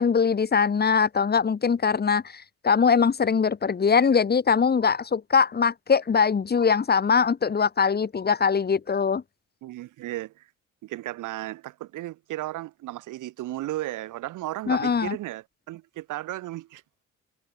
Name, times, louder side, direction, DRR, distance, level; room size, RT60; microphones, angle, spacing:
voice 1, 0.0-9.2 14.7-15.2, left 6 dB, 30° left, 1.4 m, -22 dB
voice 2, 9.6-10.5 10.8-16.8, right 16 dB, 85° right, 1.9 m, -35 dB
cardioid pair, 90°, 30 cm